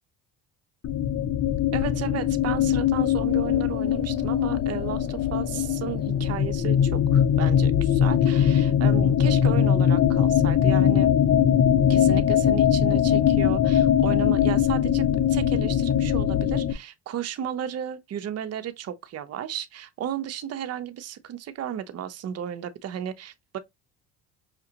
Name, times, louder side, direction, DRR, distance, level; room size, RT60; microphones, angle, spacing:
sound 1, 0.8-16.7, left 9 dB, 40° left, 0.6 m, -21 dB
voice 1, 1.7-11.1 11.9-23.6, right 10 dB, 45° right, 0.8 m, -34 dB
5.8 x 2.4 x 2.8 m
supercardioid pair, 85°, 34 cm